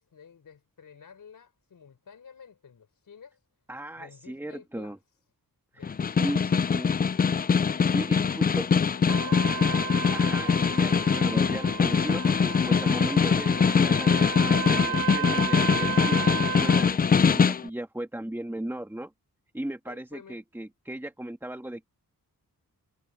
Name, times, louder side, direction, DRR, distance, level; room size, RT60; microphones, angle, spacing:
voice 1, 0.0-3.4 4.0-5.0 5.7-6.7 7.7-9.9 10.4-10.9 19.9-20.4, left 6 dB, 65° left, 5.1 m, -51 dB
voice 2, 3.7-5.0 5.7-5.9 6.2-6.9 7.9-8.7 10.1-10.5 10.8-19.1 19.5-21.9, right 1 dB, 5° right, 1.9 m, -36 dB
Snare drum, 5.8-17.7, left 6 dB, 25° left, 0.3 m, -23 dB
Trumpet, 9.1-16.9, right 10 dB, 85° right, 1.9 m, -34 dB
wide cardioid pair, 115°, 36 cm